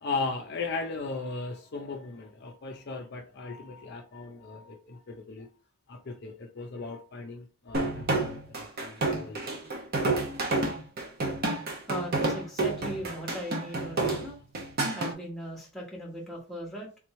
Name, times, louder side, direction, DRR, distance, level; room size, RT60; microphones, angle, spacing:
voice 1, 0.0-5.5 5.9-9.5, left 3 dB, 50° left, 0.5 m, -37 dB
sound 1, 7.7-15.1, right 2 dB, 45° right, 0.8 m, -29 dB
voice 2, 11.9-14.4 14.9-16.9, equal, ahead, 1.2 m, -38 dB
3.7 x 3.0 x 3.1 m
head